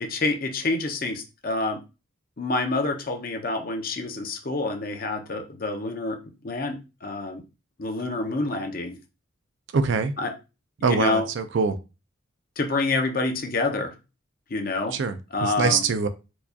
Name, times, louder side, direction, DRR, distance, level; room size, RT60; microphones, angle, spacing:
voice 1, 0.0-1.8 2.4-6.2 6.4-7.4 7.8-9.0 10.2-10.4 10.8-11.3 12.6-13.9 14.5-15.0 15.3-15.8, left 3 dB, 45° left, 0.6 m, -27 dB
voice 2, 9.7-10.1 10.8-11.8 14.9-16.1, right 5 dB, 60° right, 0.4 m, -24 dB
4.5 x 2.3 x 2.7 m
head